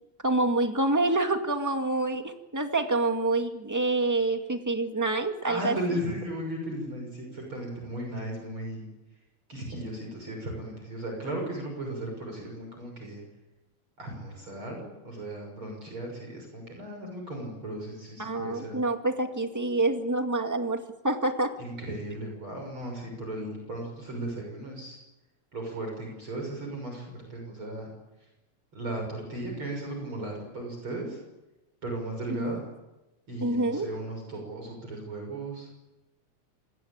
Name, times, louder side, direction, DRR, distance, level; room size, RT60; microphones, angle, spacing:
voice 1, 0.2-6.0 18.2-21.5 32.4-32.6 33.4-33.9, right 2 dB, 5° right, 5 dB, 1.6 m, -27 dB
voice 2, 5.4-8.9 9.5-13.2 14.0-18.8 21.6-25.0 25.5-27.9 28.7-31.2 31.8-32.6 33.3-35.8, right 1 dB, 45° right, 1 dB, 7.1 m, -36 dB
27.0 x 20.5 x 8.8 m, 1.0 s
omnidirectional pair, 3.3 m